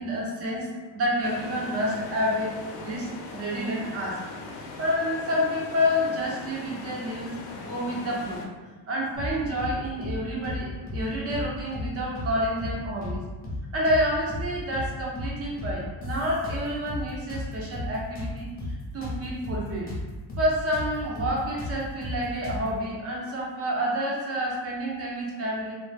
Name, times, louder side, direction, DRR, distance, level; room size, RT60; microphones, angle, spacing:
voice 1, 0.0-4.2 4.6-8.4 8.9-13.2 13.7-18.5 18.9-19.9 20.4-25.7, equal, 35° right, -3 dB, 0.6 m, -29 dB
sound 1, 1.2-8.5, left 3 dB, 80° left, 0.6 m, -40 dB
sound 2, 9.2-9.7 10.0-10.2 10.4-11.5 11.7-11.9 12.2-13.2 13.4-13.6 13.9-14.9 15.2-15.3 15.6-17.0 17.3-20.0 20.3-20.5 20.7-22.8, left 2 dB, 20° left, 0.6 m, -34 dB
2.1 x 2.0 x 3.2 m, 1.2 s
cardioid pair, 145°, 43 cm